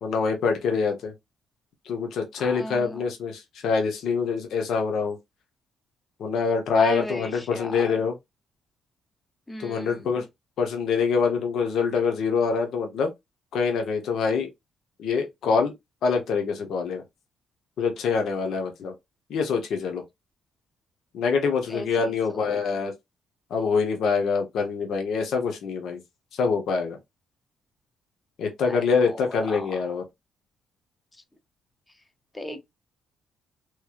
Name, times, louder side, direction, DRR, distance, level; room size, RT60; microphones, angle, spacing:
voice 1, 0.0-1.1 1.8-5.2 6.2-8.1 9.6-10.3 10.6-13.1 13.5-14.5 15.0-15.7 16.0-17.0 17.8-18.9 19.3-20.0 21.1-22.9 23.5-26.0 26.3-27.0 28.4-30.0, left 5 dB, 75° left, 0.9 m, -25 dB
voice 2, 2.4-3.0 6.8-7.9 9.5-10.1 21.7-21.9 22.3-22.6 28.7-28.8 29.0-29.8 32.3-32.7, left 1 dB, 15° left, 0.9 m, -35 dB
3.2 x 3.0 x 2.4 m
cardioid pair, 90°, 0 cm